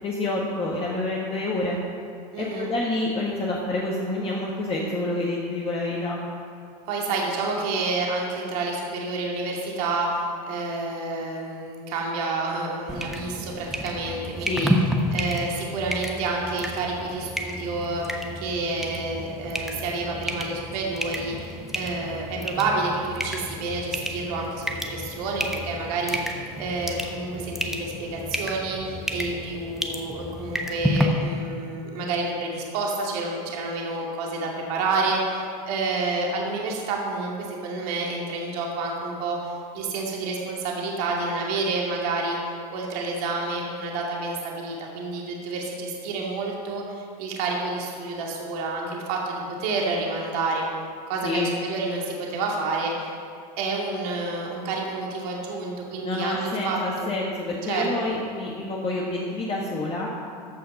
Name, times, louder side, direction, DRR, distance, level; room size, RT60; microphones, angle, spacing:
voice 1, 0.0-1.8 2.4-6.2 14.4-14.7 51.2-51.5 56.0-60.1, left 2 dB, 30° left, -3 dB, 1.6 m, -28 dB
voice 2, 2.3-2.7 6.9-14.7 15.1-42.4 42.7-50.7 51.1-53.1 53.6-57.1 57.7-58.1, right 3 dB, 70° right, -2 dB, 2.3 m, -29 dB
sound 1, 12.9-31.0, equal, ahead, 1.1 m, -31 dB
14.0 x 5.8 x 5.4 m, 2.4 s
hypercardioid pair, 100°, 20 cm